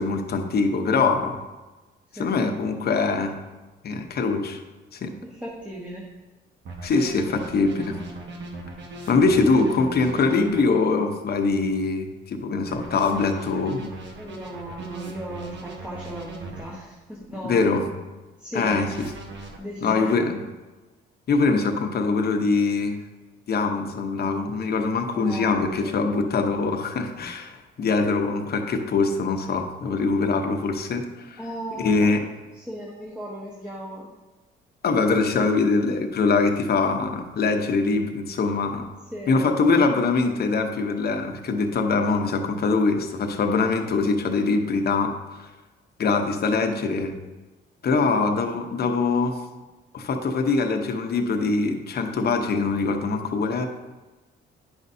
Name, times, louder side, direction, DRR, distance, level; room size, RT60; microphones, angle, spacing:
voice 1, 0.0-1.4 2.2-3.4 3.8-4.6 4.9-5.2 6.8-8.0 9.1-13.9 17.4-17.8 18.5-19.1 19.8-20.4 21.3-23.0 23.5-31.4 31.8-32.2 34.8-38.8 39.3-45.1 46.0-47.2 47.8-49.4 49.9-53.7, left 4 dB, 50° left, 5 dB, 0.9 m, -23 dB
voice 2, 2.1-2.5 5.2-6.1 14.2-17.8 18.4-18.9 19.6-20.4 25.1-25.5 25.8-26.0 31.4-32.2 32.6-34.1 39.1-39.4 48.0-48.8, right 1 dB, 5° right, -4 dB, 1.3 m, -36 dB
sound 1, 6.7-10.6 12.7-16.6 18.7-19.6, right 3 dB, 65° right, 1.3 m, -38 dB
9.7 x 5.3 x 2.7 m, 1.2 s
cardioid pair, 90°, 20 cm